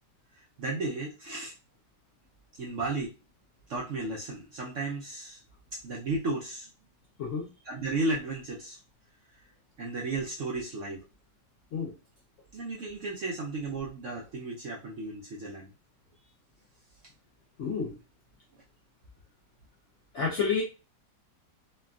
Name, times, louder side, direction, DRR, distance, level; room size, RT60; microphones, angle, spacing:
voice 1, 0.3-1.5 2.6-3.1 3.7-5.4 5.8-6.7 7.6-8.8 9.8-11.1 12.5-15.7, right 2 dB, 80° right, 0.6 m, -34 dB
voice 2, 17.6-18.0 20.1-20.6, left 5 dB, 70° left, 0.7 m, -29 dB
3.3 x 2.2 x 2.3 m
omnidirectional pair, 1.9 m